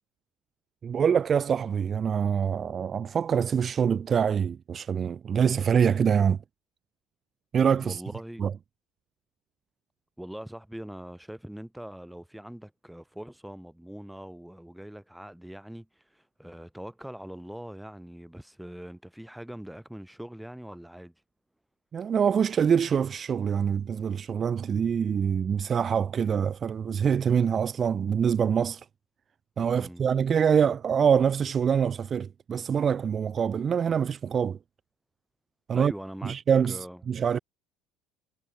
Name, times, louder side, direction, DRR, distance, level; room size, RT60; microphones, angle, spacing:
voice 1, 0.8-6.4 7.5-8.0 8.4-8.5 21.9-28.9 29.6-34.6 35.7-35.9 36.2-37.4, right 7 dB, 30° right, 0.5 m, -25 dB
voice 2, 7.8-8.4 10.2-21.1 29.7-30.1 35.7-36.4 36.7-37.0, equal, ahead, 1.6 m, -42 dB
cardioid pair, 125°, 0 cm